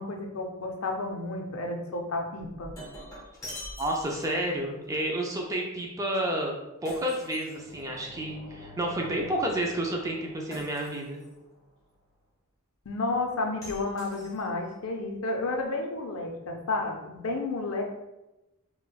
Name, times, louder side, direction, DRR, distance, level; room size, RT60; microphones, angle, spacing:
voice 1, 0.0-2.7 12.9-17.8, left 2 dB, 75° left, 2 dB, 0.5 m, -31 dB
Shatter, 2.4-4.6 6.9-8.1 10.5-11.3 13.6-14.7, equal, 15° left, 0.7 m, -44 dB
voice 2, 3.8-6.5 6.8-11.2, right 1 dB, 15° right, 0 dB, 0.3 m, -30 dB
sound 1, 7.7-11.5, left 1 dB, 50° right, 1.5 m, -48 dB
4.1 x 2.2 x 2.2 m, 0.99 s
head